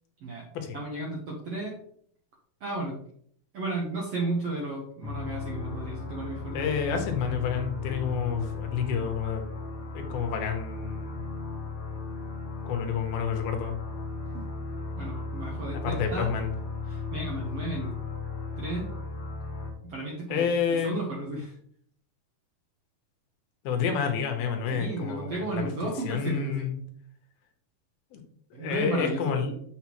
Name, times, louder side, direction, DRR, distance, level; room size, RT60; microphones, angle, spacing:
voice 1, 0.7-1.7 2.6-3.0 3.5-6.7 14.3-14.4 15.0-16.3 16.9-17.9 18.6-18.9 19.9-21.5 24.7-26.7 28.5-29.3, right 2 dB, 70° right, -2 dB, 1.5 m, -33 dB
sound 1, 5.0-19.7, left 4 dB, 55° left, 1.7 m, -36 dB
voice 2, 6.5-9.4 9.9-11.2 12.6-13.7 15.8-16.5 20.3-21.0 23.6-25.7 26.0-26.8 28.1-28.2 28.6-29.5, left 6 dB, 80° left, 5 dB, 2.9 m, -29 dB
7.2 x 6.7 x 3.1 m, 0.63 s
omnidirectional pair, 4.4 m